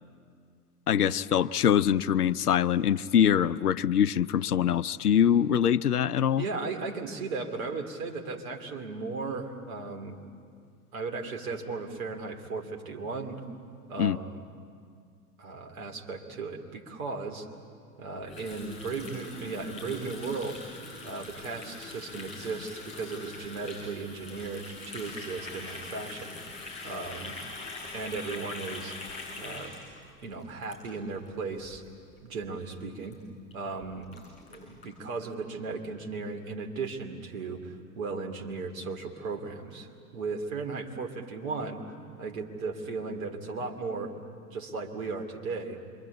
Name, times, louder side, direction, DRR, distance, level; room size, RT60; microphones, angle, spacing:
voice 1, 0.9-6.5 14.0-14.2, left 9 dB, 75° left, 16 dB, 0.6 m, -24 dB
voice 2, 6.4-10.2 10.9-13.4 13.9-14.4 15.4-17.5 18.0-20.6 21.0-26.4 26.8-27.4 27.9-29.0 29.4-29.8 30.2-31.8 32.2-33.2 33.5-34.1 34.5-41.8 42.2-44.1 44.5-45.8, right 4 dB, 60° right, 3 dB, 2.7 m, -36 dB
Water tap faucet, 18.3-31.3 31.6-31.8 32.1-32.4 32.7-32.8 33.0-33.1 33.5-33.6 33.8-34.9, left 3 dB, 15° left, 7.8 m, -43 dB
26.5 x 23.5 x 8.4 m, 2.2 s
figure-of-eight pair, 85°, 46 cm